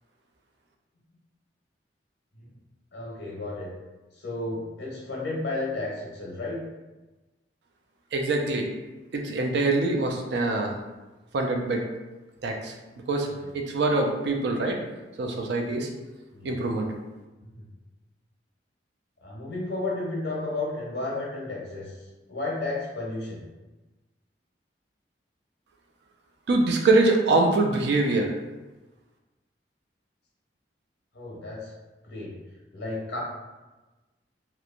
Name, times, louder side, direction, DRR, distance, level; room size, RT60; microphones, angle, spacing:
voice 1, 2.9-3.7 4.1-6.6 13.4-13.5 16.3-16.6 17.5-17.6 19.2-23.4 31.1-31.7 32.0-32.3 32.7-33.2, left 2 dB, 75° left, -4 dB, 0.9 m, -33 dB
voice 2, 8.1-8.7 9.1-10.7 11.3-11.8 12.4-12.7 13.1-13.3 13.5-14.8 15.2-15.9 16.4-16.9 26.5-28.3, right 2 dB, 65° right, 2 dB, 0.4 m, -24 dB
3.0 x 2.1 x 2.4 m, 1.1 s
head